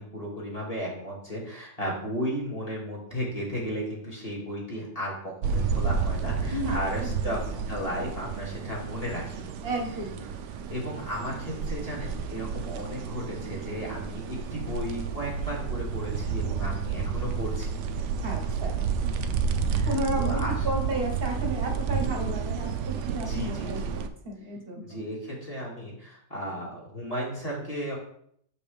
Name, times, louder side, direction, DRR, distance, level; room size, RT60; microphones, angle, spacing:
voice 1, 0.0-9.5 10.7-17.8 18.4-18.5 19.7-20.5 23.3-24.0 24.8-28.0, equal, 20° left, -4 dB, 2.0 m, -34 dB
sound 1, 5.4-24.1, right 6 dB, 80° right, 1.2 m, -30 dB
voice 2, 6.5-7.6 9.6-10.3 18.2-18.9 19.8-25.0, right 1 dB, 40° right, 1 dB, 1.2 m, -33 dB
6.6 x 5.4 x 3.4 m, 0.66 s
omnidirectional pair, 1.8 m